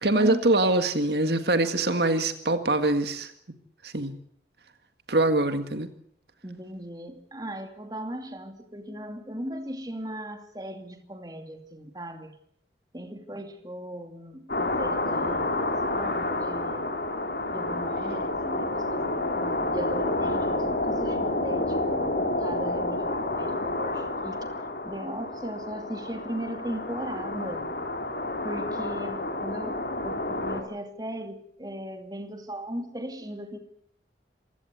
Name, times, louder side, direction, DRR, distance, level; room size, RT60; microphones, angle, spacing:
voice 1, 0.0-3.3 3.8-4.1 5.1-5.9, right 2 dB, 70° right, 8 dB, 1.8 m, -24 dB
voice 2, 6.4-12.3 12.9-16.9 17.5-24.4 24.8-27.7 28.4-33.6, equal, 20° right, 6 dB, 2.6 m, -38 dB
sound 1, 14.5-30.6, left 2 dB, 65° left, 3.9 m, -29 dB
26.5 x 16.5 x 8.0 m, 0.67 s
head